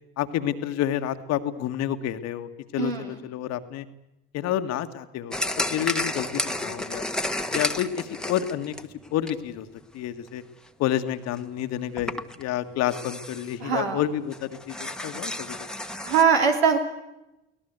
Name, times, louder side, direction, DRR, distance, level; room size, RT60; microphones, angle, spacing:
voice 1, 0.2-3.9 4.3-7.0 7.5-8.7 9.1-9.7 9.9-10.4 10.8-15.6, left 11 dB, 60° left, 9 dB, 1.7 m, -29 dB
voice 2, 2.8-3.2 13.6-14.0 16.0-16.8, right 6 dB, 85° right, 2 dB, 3.2 m, -22 dB
sound 1, 5.3-9.7 10.1-10.3 11.1-11.2 11.3-11.4 12.0-12.4 12.9-13.7 14.0-14.1 14.3-16.2, left 1 dB, ahead, 1.5 m, -32 dB
24.0 x 18.0 x 8.1 m, 0.91 s
hypercardioid pair, 65°, 30 cm